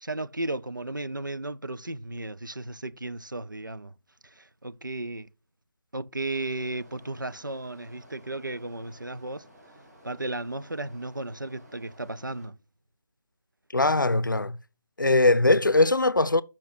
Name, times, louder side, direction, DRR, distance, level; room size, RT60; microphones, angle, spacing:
voice 1, 0.0-3.9 4.2-5.3 5.9-9.4 10.0-12.6, right 2 dB, 85° right, 0.6 m, -34 dB
sound 1, 6.3-12.5, right 1 dB, 55° right, 3.2 m, -54 dB
voice 2, 13.7-14.6 15.0-16.4, left 2 dB, 85° left, 0.5 m, -21 dB
6.3 x 5.9 x 6.1 m
figure-of-eight pair, 150°, 10 cm